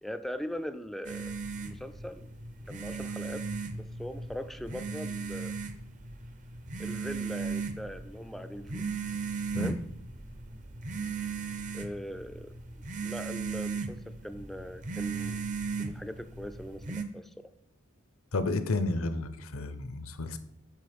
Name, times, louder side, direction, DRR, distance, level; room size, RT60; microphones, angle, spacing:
voice 1, 0.0-2.3 2.7-5.6 6.8-8.8 9.6-9.8 11.7-12.5 13.0-15.4 15.8-17.3, equal, ahead, 10 dB, 0.3 m, -41 dB
sound 1, 1.0-17.0, right 4 dB, 35° right, 0.6 m, -37 dB
voice 2, 18.3-20.4, left 2 dB, 80° left, 11 dB, 0.7 m, -31 dB
7.6 x 5.0 x 5.1 m, 0.76 s
head